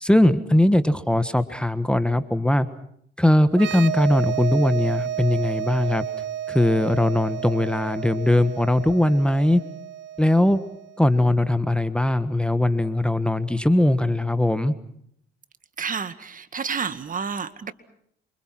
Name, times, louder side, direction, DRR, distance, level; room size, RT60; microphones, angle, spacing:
voice 1, 0.0-2.7 3.2-6.1 6.5-9.6 10.2-10.6 11.0-14.7, left 1 dB, 5° left, 12 dB, 1.5 m, -20 dB
sound 1, 3.5-11.0, right 10 dB, 65° right, 1.5 m, -32 dB
voice 2, 15.8-17.7, right 6 dB, 40° right, 11 dB, 2.1 m, -30 dB
28.0 x 25.5 x 6.1 m, 0.69 s
cardioid pair, 90°, 20 cm